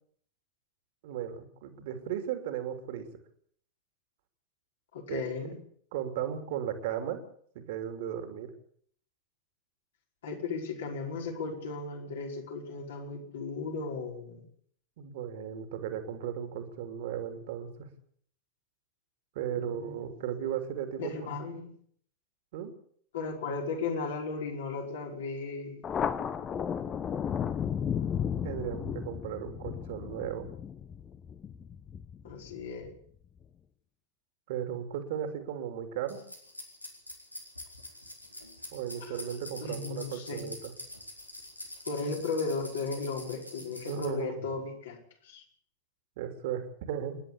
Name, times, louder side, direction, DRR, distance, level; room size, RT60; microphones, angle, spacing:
voice 1, 1.0-3.1 5.1-5.2 5.9-7.2 7.5-8.5 15.0-17.9 19.3-21.3 22.5-22.7 28.4-30.5 34.5-36.2 38.7-40.7 43.8-44.3 46.2-47.2, right 9 dB, 50° right, 7 dB, 3.0 m, -36 dB
voice 2, 4.9-5.6 10.2-14.4 19.5-20.1 21.0-21.7 23.1-25.8 32.2-32.9 39.0-39.2 39.6-40.5 41.8-45.0 45.2-45.4, left 4 dB, 60° left, 1 dB, 5.4 m, -36 dB
Thunder, 25.8-32.9, left 8 dB, 25° left, 1.2 m, -34 dB
sound 1, 36.1-44.0, left 1 dB, 85° left, 4.0 m, -45 dB
28.5 x 11.0 x 8.4 m, 0.62 s
figure-of-eight pair, 90°, 0 cm